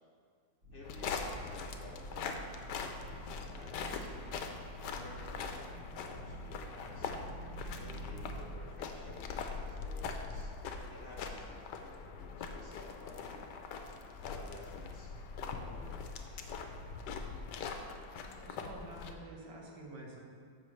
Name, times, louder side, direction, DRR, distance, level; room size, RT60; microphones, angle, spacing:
sound 1, 0.6-8.4, right 1 dB, 50° right, 2.3 m, -48 dB
voice 1, 0.7-2.4 3.0-4.3 4.8-7.1 7.7-10.5 10.9-13.5 14.2-16.2 17.4-17.5, left 3 dB, 50° left, -2 dB, 0.6 m, -53 dB
sound 2, 0.8-19.1, left 5 dB, 75° left, 1.2 m, -42 dB
voice 2, 18.2-20.2, right 2 dB, 75° right, -1 dB, 1.9 m, -49 dB
13.5 x 5.8 x 3.2 m, 2.1 s
omnidirectional pair, 2.0 m